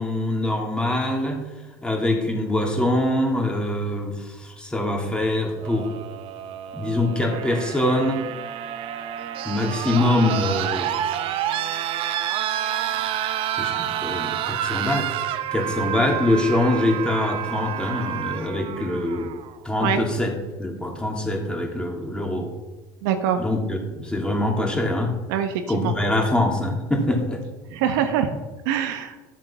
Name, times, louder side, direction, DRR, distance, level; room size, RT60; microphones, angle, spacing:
voice 1, 0.0-1.4 1.8-5.9 6.7-8.2 9.4-10.9 12.9-15.1 15.5-19.3 19.6-22.5 23.4-25.1 25.7-27.4, left 1 dB, 10° left, 0 dB, 3.1 m, -24 dB
sound 1, 5.6-19.6 20.8-20.9, right 11 dB, 60° right, 0.9 m, -29 dB
voice 2, 23.0-23.4 25.3-25.9 27.7-28.3 28.6-29.1, right 9 dB, 85° right, 7 dB, 1.3 m, -24 dB
12.5 x 7.5 x 5.8 m, 1.2 s
supercardioid pair, 100°, 10 cm